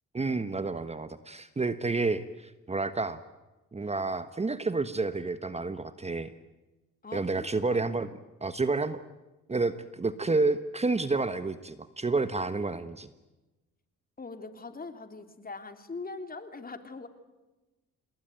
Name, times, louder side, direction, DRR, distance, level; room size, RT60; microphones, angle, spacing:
voice 1, 0.1-3.2 3.7-6.3 7.1-8.1 8.4-9.0 9.5-13.1, right 3 dB, 20° right, 12 dB, 1.2 m, -30 dB
voice 2, 7.0-7.9 14.2-17.1, left 3 dB, 30° left, 8 dB, 3.3 m, -42 dB
28.5 x 21.0 x 9.3 m, 1.1 s
cardioid pair, 90°, 30 cm